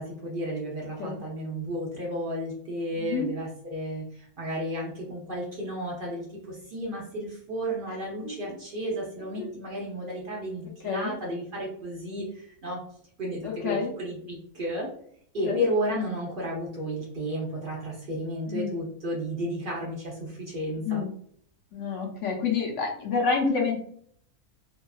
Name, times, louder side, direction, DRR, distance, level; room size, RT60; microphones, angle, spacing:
voice 1, 0.0-12.8 13.2-14.9 15.3-21.0, equal, 60° right, -3 dB, 0.5 m, -33 dB
voice 2, 3.0-3.3 8.2-8.4 9.4-9.5 10.8-11.2 13.4-13.9 15.4-15.6 18.5-18.7 20.8-21.1 21.7-23.8, left 5 dB, 65° left, 0 dB, 0.8 m, -28 dB
2.8 x 2.3 x 2.3 m, 0.62 s
omnidirectional pair, 1.6 m